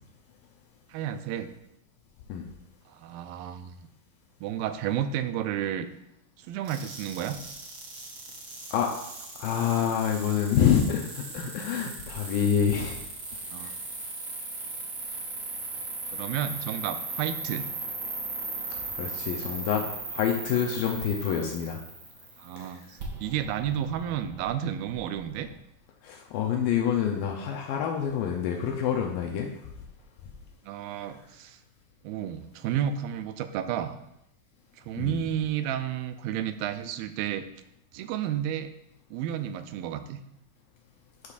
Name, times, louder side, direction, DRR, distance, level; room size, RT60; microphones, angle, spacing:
voice 1, 0.9-1.5 2.9-3.7 4.4-5.9 6.4-7.4 11.9-12.0 13.5-13.7 16.1-17.7 20.5-20.6 22.4-25.5 30.7-31.6 32.0-33.9 34.8-37.5 37.9-38.7 39.1-40.2, right 10 dB, 85° right, 10 dB, 2.3 m, -31 dB
sound 1, 6.6-25.5, right 3 dB, 45° right, 1.8 m, -38 dB
voice 2, 9.4-13.1 13.6-13.7 19.0-19.8 20.1-21.8 22.6-22.7 26.0-29.5 35.0-35.2, left 8 dB, 75° left, 1 dB, 2.3 m, -27 dB
11.5 x 6.7 x 2.5 m, 0.81 s
omnidirectional pair, 4.3 m